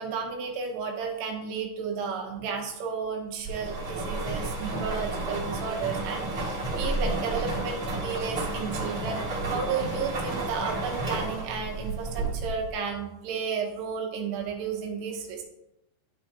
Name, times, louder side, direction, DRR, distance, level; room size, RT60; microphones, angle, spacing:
voice 1, 0.0-15.4, right 6 dB, 90° right, 1 dB, 3.2 m, -33 dB
sound 1, 3.4-12.7, right 2 dB, 30° right, 2.2 m, -32 dB
11.5 x 4.4 x 2.9 m, 0.89 s
omnidirectional pair, 4.6 m